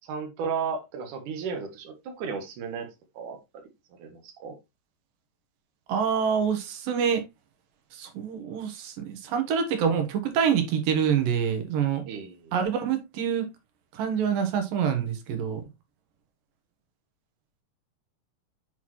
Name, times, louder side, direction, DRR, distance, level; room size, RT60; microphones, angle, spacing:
voice 1, 0.0-2.9 3.2-3.4 4.0-4.5 12.1-12.5, right 5 dB, 70° right, 2.8 m, -34 dB
voice 2, 5.9-7.2 7.9-12.0 12.5-13.5 13.9-15.6, right 7 dB, 85° right, 2.9 m, -26 dB
7.8 x 4.3 x 3.0 m
omnidirectional pair, 3.9 m